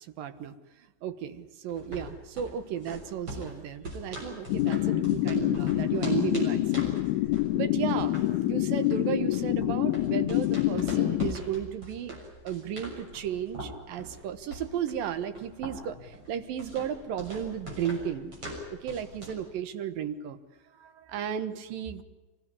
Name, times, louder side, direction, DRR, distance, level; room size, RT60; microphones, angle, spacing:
voice 1, 0.2-0.5 1.0-6.8 7.5-12.2 12.4-18.3 18.7-20.4 20.7-22.0, right 9 dB, 65° right, 10 dB, 2.3 m, -34 dB
sound 1, 1.7-19.5, equal, 30° right, 7.4 m, -43 dB
sound 2, 4.5-11.3, left 17 dB, 70° left, 2.9 m, -26 dB
25.0 x 18.0 x 9.9 m, 1.2 s
omnidirectional pair, 5.4 m